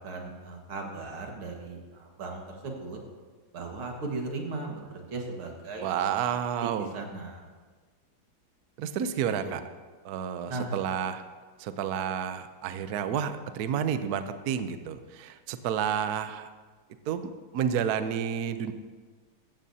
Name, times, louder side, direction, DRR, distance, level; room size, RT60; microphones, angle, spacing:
voice 1, 0.0-3.0 3.5-5.9 6.2-6.3 6.6-7.4 9.4-9.5 10.5-10.7, right 3 dB, 85° right, 1 dB, 2.6 m, -37 dB
voice 2, 5.8-7.0 8.8-9.6 10.0-11.2 11.6-16.5 17.1-18.7, right 8 dB, 65° right, 10 dB, 0.9 m, -30 dB
15.0 x 14.5 x 2.8 m, 1.4 s
omnidirectional pair, 2.3 m